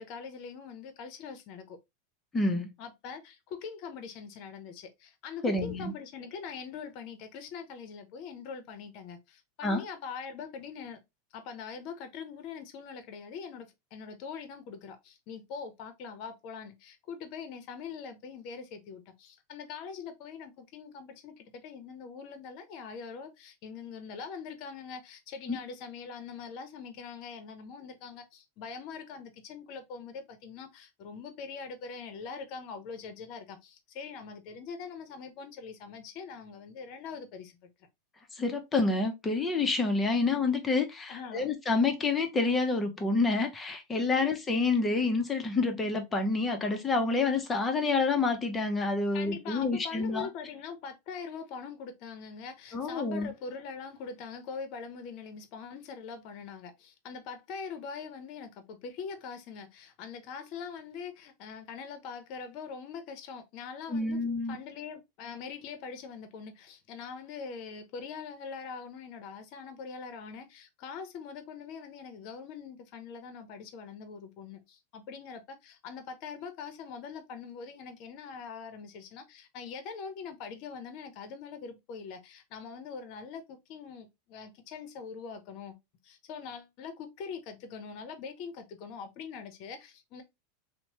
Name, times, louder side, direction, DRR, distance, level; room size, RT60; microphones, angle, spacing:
voice 1, 0.0-1.8 2.8-11.0 11.3-37.6 41.1-41.5 49.1-64.2 64.5-85.8 86.0-90.2, left 5 dB, 55° left, 0.8 m, -43 dB
voice 2, 2.3-2.7 5.4-5.9 9.6-9.8 25.5-25.6 38.3-50.3 52.7-53.3 63.9-64.6, left 3 dB, 20° left, 0.8 m, -28 dB
3.0 x 2.1 x 2.9 m
hypercardioid pair, 105°, 0 cm